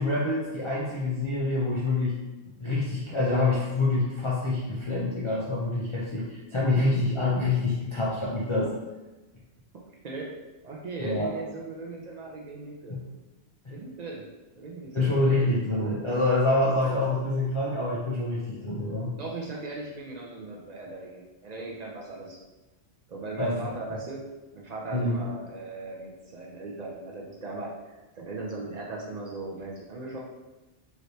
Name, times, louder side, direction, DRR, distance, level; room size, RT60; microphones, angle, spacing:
voice 1, 0.0-2.1 2.6-8.7 11.0-11.3 12.9-13.0 14.9-19.1 23.4-23.6 24.9-25.2, left 2 dB, 55° left, -6 dB, 0.3 m, -26 dB
voice 2, 9.9-10.3 10.6-13.0 13.7-14.3 14.6-15.3 19.2-22.4 23.1-24.2 24.5-30.2, right 3 dB, 70° right, -2 dB, 0.4 m, -38 dB
3.1 x 2.9 x 2.7 m, 1.1 s
omnidirectional pair, 1.2 m